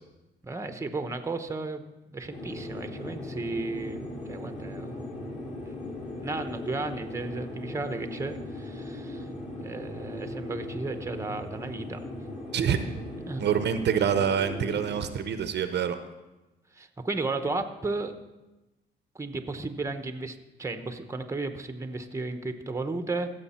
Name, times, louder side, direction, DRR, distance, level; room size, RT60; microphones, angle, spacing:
voice 1, 0.4-1.8 2.1-4.0 4.3-5.2 6.2-9.3 9.6-12.0 13.2-13.5 16.7-18.1 19.1-23.3, right 3 dB, 15° right, 8 dB, 0.9 m, -34 dB
sound 1, 2.3-15.0, left 1 dB, 35° left, 4.1 m, -38 dB
voice 2, 12.5-12.8 13.4-16.0, right 8 dB, 60° right, 10 dB, 0.7 m, -26 dB
15.5 x 6.6 x 4.3 m, 1.0 s
cardioid pair, 90°, 20 cm